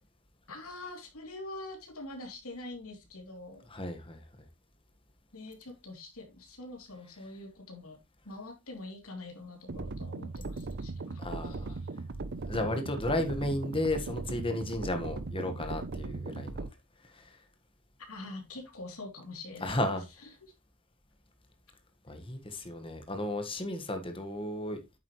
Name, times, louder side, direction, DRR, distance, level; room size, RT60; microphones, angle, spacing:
voice 1, 0.5-3.6 5.3-8.0 8.2-11.6 18.1-19.9 20.4-20.5, left 2 dB, 70° left, 3.1 m, -44 dB
voice 2, 3.7-4.2 11.2-11.8 12.5-16.7 17.1-17.4 19.6-20.0 22.1-25.0, left 1 dB, 25° left, 1.5 m, -34 dB
sound 1, 9.7-16.7, right 3 dB, 45° right, 0.6 m, -38 dB
9.2 x 7.4 x 3.2 m
head